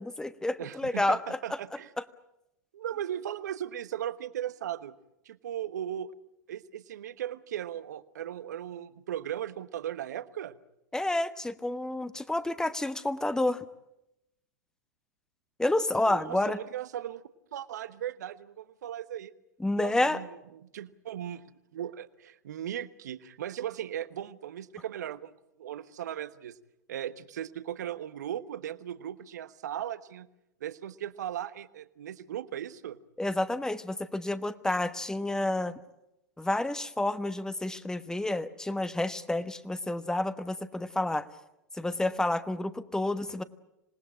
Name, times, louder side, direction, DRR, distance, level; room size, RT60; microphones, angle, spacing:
voice 1, 0.0-1.4 10.9-13.6 15.6-16.6 19.6-20.2 33.2-35.8 36.4-41.3 41.7-43.4, left 2 dB, 5° left, 13 dB, 1.2 m, -29 dB
voice 2, 0.6-1.9 2.7-5.0 5.2-6.1 6.5-10.6 16.1-17.2 17.5-19.3 19.8-21.4 21.7-25.3 25.6-26.6 26.9-30.3 30.6-33.0 39.4-39.5, right 11 dB, 70° right, 14 dB, 1.2 m, -37 dB
27.0 x 19.0 x 8.8 m, 0.90 s
hypercardioid pair, 95°, 9 cm